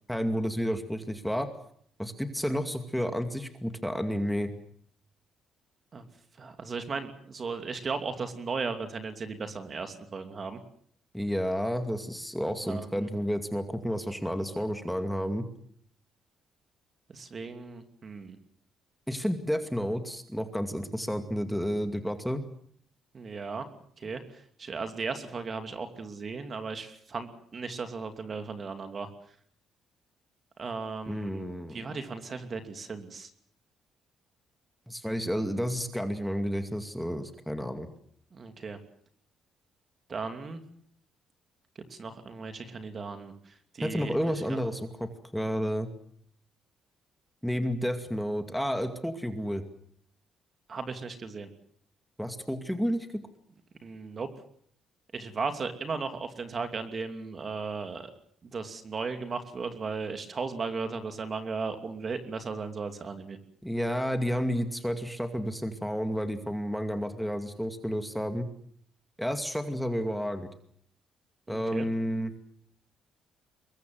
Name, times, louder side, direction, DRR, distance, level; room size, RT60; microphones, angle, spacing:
voice 1, 0.1-1.5 2.0-4.5 11.1-15.5 19.1-22.4 31.1-31.9 34.9-37.9 43.8-45.9 47.4-49.6 52.2-53.2 63.6-68.5 69.2-70.5 71.5-72.3, equal, ahead, 7 dB, 2.3 m, -31 dB
voice 2, 6.4-10.6 12.6-13.1 17.1-18.4 23.1-23.7 24.0-29.1 30.6-31.4 31.7-33.3 38.3-38.8 40.1-40.6 41.9-44.2 44.5-44.6 50.7-51.5 53.8-54.3 55.1-58.1 58.4-63.4 71.5-71.9, right 4 dB, 40° right, 7 dB, 2.8 m, -36 dB
23.5 x 22.0 x 7.8 m, 0.64 s
cardioid pair, 105°, 0 cm